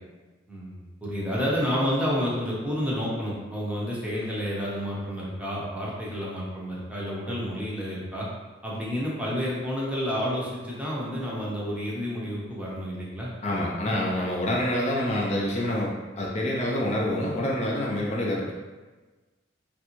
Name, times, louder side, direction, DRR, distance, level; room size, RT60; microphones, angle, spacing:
voice 1, 0.5-8.3 8.6-14.0, equal, 5° right, -6 dB, 0.7 m, -30 dB
voice 2, 13.4-18.5, left 1 dB, 35° left, -3 dB, 0.5 m, -27 dB
3.2 x 2.5 x 3.0 m, 1.3 s
head